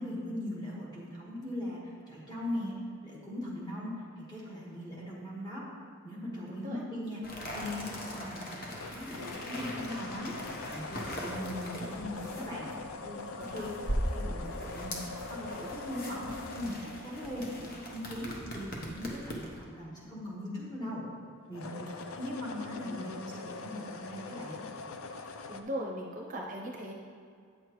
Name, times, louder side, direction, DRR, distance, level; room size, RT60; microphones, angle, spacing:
voice 1, 0.0-2.7 3.0-5.6 6.0-7.2 7.5-10.3 10.6-12.8 13.4-15.0 15.3-21.0 21.5-24.6, left 1 dB, 20° left, -7 dB, 1.6 m, -40 dB
voice 2, 6.3-6.8 13.0-13.6 21.7-22.0 25.5-26.9, equal, 40° right, -1 dB, 0.6 m, -40 dB
sound 1, 7.2-19.6, equal, 45° left, 1.0 m, -40 dB
sound 2, 8.7-18.0 21.4-25.6, left 4 dB, 80° left, 0.5 m, -43 dB
8.8 x 6.4 x 3.1 m, 2.3 s
head